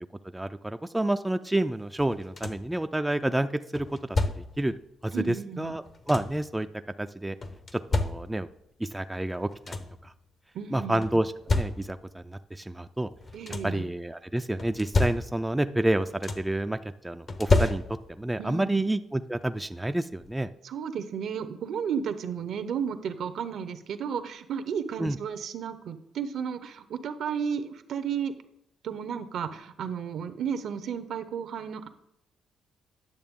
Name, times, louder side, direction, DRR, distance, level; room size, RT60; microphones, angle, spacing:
voice 1, 0.3-4.8 5.0-6.7 7.0-7.4 7.7-8.5 8.8-9.8 10.0-10.1 10.7-13.1 13.6-17.8 18.1-20.5 25.0-25.2, right 1 dB, 10° right, 9 dB, 0.4 m, -29 dB
sound 1, 2.0-2.8 3.7-4.7 5.6-6.5 7.4-8.6 9.2-9.3 9.5-10.1 11.0-12.2 13.1-13.9 14.6-15.6 15.9-16.6 17.3-18.3 19.6-19.7 20.2-20.4, left 3 dB, 40° left, 0.7 m, -30 dB
voice 2, 5.1-5.8 10.5-11.0 13.3-13.8 18.4-18.8 20.6-28.3 28.8-31.9, right 7 dB, 70° right, 10 dB, 0.7 m, -33 dB
10.5 x 6.7 x 3.6 m, 0.79 s
cardioid pair, 90°, 0 cm